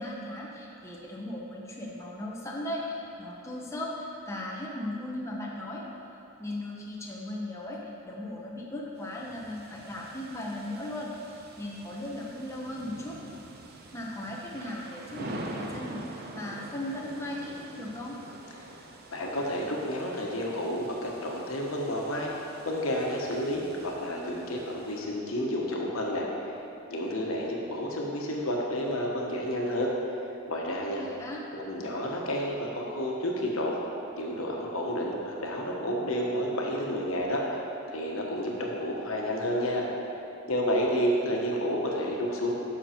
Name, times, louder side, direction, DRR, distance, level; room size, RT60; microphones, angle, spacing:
voice 1, 0.0-5.8 6.4-13.2 13.9-16.1 16.3-18.2 31.0-31.4, left 1 dB, 15° left, -4 dB, 0.9 m, -37 dB
sound 1, 9.0-25.0, right 2 dB, 45° right, 0.8 m, -46 dB
voice 2, 19.1-22.3 22.6-26.6 26.9-30.2 30.5-31.0 31.5-33.7 34.2-37.6 37.9-39.9 40.5-42.5, equal, 70° left, -1 dB, 1.3 m, -30 dB
10.5 x 6.4 x 4.5 m, 2.8 s
head